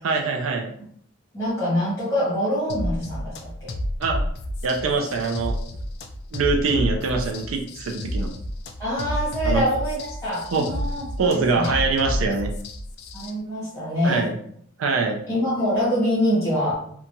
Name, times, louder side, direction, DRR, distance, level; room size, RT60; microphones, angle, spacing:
voice 1, 0.0-0.7 4.0-4.2 4.6-5.6 6.3-8.3 9.4-9.6 10.5-10.7 11.2-12.5 14.0-14.4 14.8-15.2, right 4 dB, 80° right, 2 dB, 0.4 m, -23 dB
voice 2, 1.3-3.7 8.8-11.7 13.1-14.2 15.3-16.7, equal, 15° left, -11 dB, 0.8 m, -25 dB
sound 1, 2.7-13.3, equal, 55° left, 0.3 m, -30 dB
2.8 x 2.2 x 2.6 m, 0.65 s
head